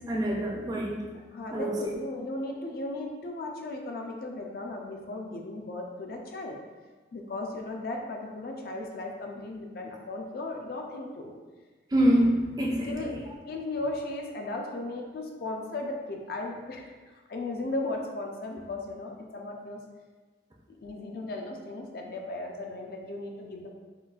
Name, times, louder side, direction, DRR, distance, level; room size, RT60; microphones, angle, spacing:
voice 1, 0.1-1.0 1.5-1.9 11.9-13.3, equal, 20° right, -2 dB, 0.4 m, -26 dB
voice 2, 1.1-6.6 7.1-11.3 12.9-13.1 13.4-19.8 20.7-23.7, left 2 dB, 55° left, 2 dB, 0.4 m, -36 dB
3.8 x 2.3 x 2.3 m, 1.3 s
head